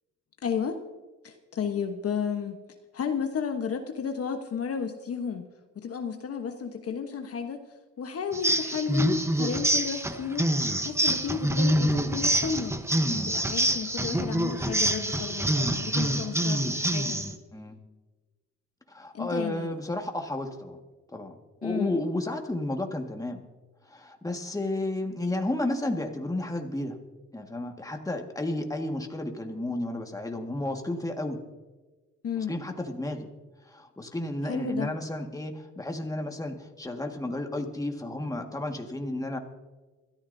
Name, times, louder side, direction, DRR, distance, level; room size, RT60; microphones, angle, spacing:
voice 1, 0.4-0.8 1.2-2.6 2.9-5.5 5.7-7.6 8.0-17.2 19.1-19.7 21.6-22.0 32.2-32.6 34.5-34.9, left 6 dB, 50° left, 5 dB, 1.2 m, -33 dB
sound 1, 8.3-17.4, right 1 dB, 10° right, 1.0 m, -26 dB
voice 2, 13.0-13.3 17.5-17.8 18.9-20.8 21.1-21.4 21.6-23.4 23.9-27.0 27.3-31.4 32.4-33.3 33.6-39.4, left 1 dB, 10° left, 3 dB, 1.8 m, -32 dB
26.5 x 13.5 x 2.7 m, 1.3 s
cardioid pair, 90°, 30 cm